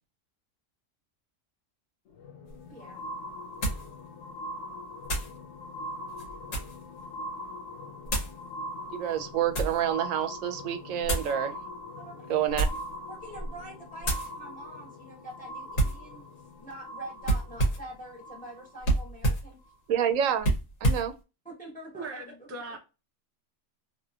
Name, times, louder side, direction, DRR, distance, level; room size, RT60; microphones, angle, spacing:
sound 1, 2.1-18.9 19.7-19.8, left 1 dB, 70° left, 0.8 m, -42 dB
sound 2, 2.5-2.6 3.6-3.9 5.0-5.4 6.1-6.8 8.1-8.4 9.1-9.8 11.0-11.3 12.4-12.9 13.3-13.6 14.0-14.3 15.7-16.0 17.2-17.9 18.8-19.5 20.4-21.1, right 2 dB, 85° left, 1.6 m, -28 dB
voice 1, 2.7-3.0 12.0-12.4 13.0-16.2 16.6-19.6 21.4-22.3, right 1 dB, 5° left, 1.1 m, -45 dB
voice 2, 8.9-11.6 12.3-12.7 19.9-20.5 20.8-21.1, right 9 dB, 85° right, 1.0 m, -28 dB
voice 3, 21.9-22.8, right 3 dB, 20° right, 0.4 m, -39 dB
3.2 x 2.7 x 2.3 m
omnidirectional pair, 1.3 m